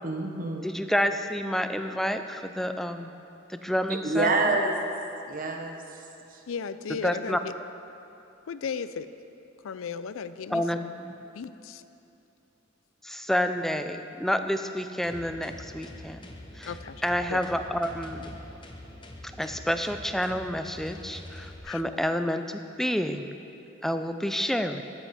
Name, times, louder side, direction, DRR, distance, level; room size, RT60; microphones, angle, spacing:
voice 1, 0.0-0.7 3.9-4.8 5.3-5.8 6.3-6.4, right 2 dB, 40° right, 2 dB, 1.0 m, -27 dB
voice 2, 0.6-3.2 3.5-4.5 7.0-7.4 10.5-11.1 13.0-16.3 16.5-16.7 17.0-18.4 19.4-23.3 23.8-24.8, equal, ahead, 8 dB, 0.3 m, -29 dB
voice 3, 6.5-7.5 8.5-9.1 9.6-10.9 11.3-11.8 16.7-17.0 17.3-17.4 21.7-21.8, left 6 dB, 75° left, 13 dB, 0.4 m, -35 dB
sound 1, 15.0-21.6, left 1 dB, 25° left, 0.8 m, -45 dB
13.5 x 8.9 x 4.2 m, 2.8 s
head